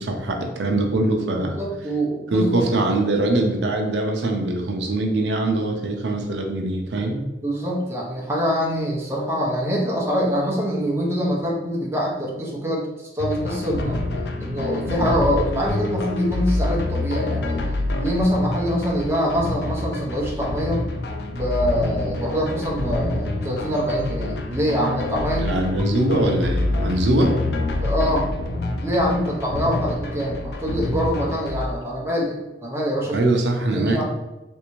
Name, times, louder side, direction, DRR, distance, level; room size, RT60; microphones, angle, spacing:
voice 1, 0.0-1.6 2.3-7.2 25.3-27.3 33.1-34.0, right 2 dB, 80° right, 3 dB, 0.5 m, -22 dB
voice 2, 1.4-2.6 7.4-14.0 14.4-17.6 18.0-20.8 21.3-25.6 27.8-28.3 28.8-33.2 33.7-34.0, equal, 15° right, -3 dB, 0.6 m, -24 dB
sound 1, 13.2-31.7, left 2 dB, 65° left, 0.4 m, -27 dB
3.3 x 2.6 x 3.0 m, 1.0 s
head